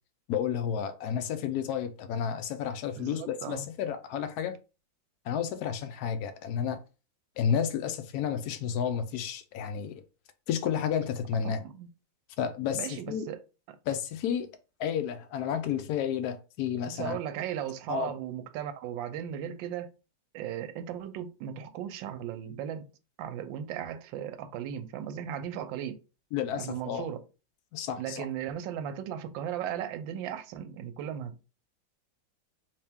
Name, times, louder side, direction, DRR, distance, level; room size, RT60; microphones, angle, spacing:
voice 1, 0.3-4.6 5.3-6.8 7.4-10.0 10.5-11.6 12.4-13.3 13.9-14.5 14.8-17.2 17.9-18.1 26.3-27.1 27.7-28.3, left 8 dB, 75° left, 0.9 m, -31 dB
voice 2, 2.9-3.6 11.4-11.9 12.7-13.4 13.7-13.8 16.8-19.9 20.3-22.9 23.2-26.0 26.6-27.2 28.0-31.4, right 9 dB, 80° right, 1.3 m, -36 dB
3.1 x 2.9 x 3.4 m
omnidirectional pair, 2.1 m